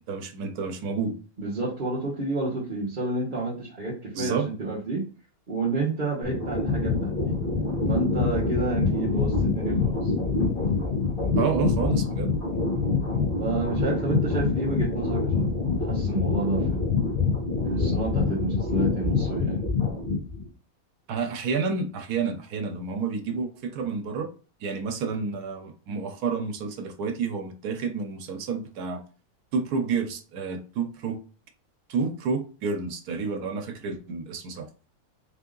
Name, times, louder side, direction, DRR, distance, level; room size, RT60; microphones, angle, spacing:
voice 1, 0.1-1.2 4.1-4.5 11.4-12.3 21.1-24.3 24.6-29.0 29.5-31.2 31.9-34.7, right 5 dB, 80° right, 1.3 m, -29 dB
voice 2, 1.4-5.1 5.5-7.4 7.9-10.1 13.4-16.8 17.7-19.6, right 3 dB, 35° right, 1.2 m, -30 dB
sound 1, 6.2-20.4, left 4 dB, 35° left, 1.6 m, -26 dB
4.1 x 2.7 x 3.8 m
omnidirectional pair, 1.6 m